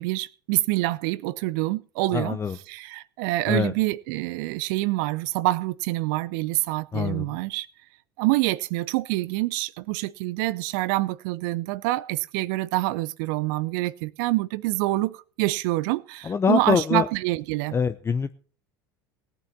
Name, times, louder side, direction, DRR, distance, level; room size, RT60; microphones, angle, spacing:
voice 1, 0.0-2.4 2.7-7.7 8.2-17.8, right 19 dB, 55° right, 0.6 m, -26 dB
voice 2, 2.1-2.6 3.5-3.7 6.9-7.4 16.2-17.1 17.7-18.3, left 6 dB, 20° left, 0.7 m, -24 dB
18.5 x 9.0 x 4.1 m
figure-of-eight pair, 75°, 12 cm